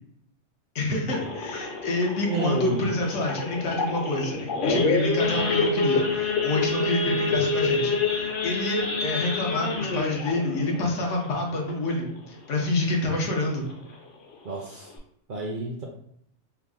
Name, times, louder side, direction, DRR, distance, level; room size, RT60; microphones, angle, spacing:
voice 1, 0.7-13.7, left 2 dB, 80° left, 1 dB, 1.1 m, -27 dB
Idling / Accelerating revving vroom / Sawing, 1.1-12.2 12.6-12.8 13.0-13.1 13.6-13.9 14.3-14.4 14.6-15.0, left 3 dB, 55° left, 0.7 m, -27 dB
voice 2, 2.3-2.9 14.4-14.9 15.3-15.9, right 3 dB, 60° right, 0 dB, 0.5 m, -30 dB
3.5 x 2.0 x 3.5 m, 0.70 s
omnidirectional pair, 1.2 m